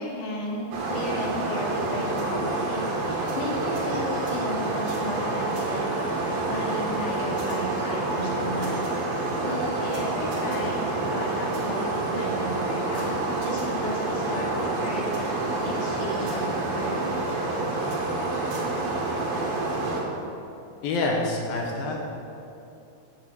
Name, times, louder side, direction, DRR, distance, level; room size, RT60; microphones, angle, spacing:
voice 1, 0.0-5.9 6.4-8.8 9.4-17.1, left 1 dB, 50° left, -3 dB, 3.2 m, -34 dB
sound 1, 0.7-20.0, right 2 dB, 90° right, 4.1 m, -28 dB
voice 2, 20.8-22.0, left 2 dB, 80° left, 0 dB, 3.1 m, -26 dB
14.0 x 7.9 x 7.7 m, 2.8 s
omnidirectional pair, 4.1 m